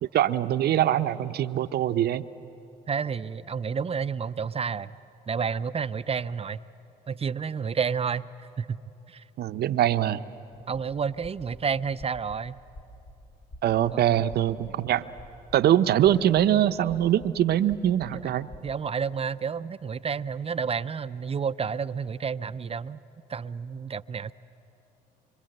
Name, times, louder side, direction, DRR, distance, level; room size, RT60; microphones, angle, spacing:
voice 1, 0.0-2.2 9.4-10.2 13.6-15.1 15.5-18.5, right 11 dB, 65° right, 12 dB, 0.7 m, -23 dB
voice 2, 2.9-4.9 5.3-6.6 7.1-8.8 9.1-9.2 10.7-12.5 13.9-14.1 18.2-18.3 18.6-23.0 23.3-24.3, right 6 dB, 35° right, 14 dB, 0.6 m, -30 dB
sound 1, 12.4-18.7, equal, 60° left, 4.2 m, -50 dB
25.5 x 25.0 x 7.9 m, 2.8 s
supercardioid pair, 65°, 18 cm